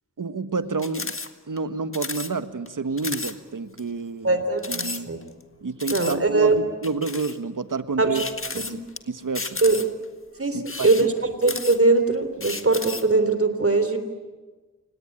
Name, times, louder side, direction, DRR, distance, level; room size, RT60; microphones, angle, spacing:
voice 1, 0.2-1.2 1.5-4.4 4.7-5.1 5.6-8.2 8.5-8.8 9.1-9.6 10.5-11.1, right 4 dB, 70° right, 11 dB, 1.4 m, -29 dB
sound 1, 0.8-1.3 1.6-1.7 1.9-2.3 2.7-2.8 3.0-3.3 3.8-3.9 4.6-5.4 5.8-6.2 6.8-7.4 8.1-9.0 9.3-10.0 10.6-12.0 12.4-13.1, left 3 dB, 40° left, 1.7 m, -33 dB
voice 2, 4.2-5.2 5.9-6.6 8.0-8.1 8.7-8.8 9.6-9.8 10.4-10.6 10.8-11.1 11.4-14.0, right 3 dB, 45° right, 9 dB, 3.5 m, -21 dB
30.0 x 17.5 x 10.0 m, 1.3 s
wide cardioid pair, 70°, 33 cm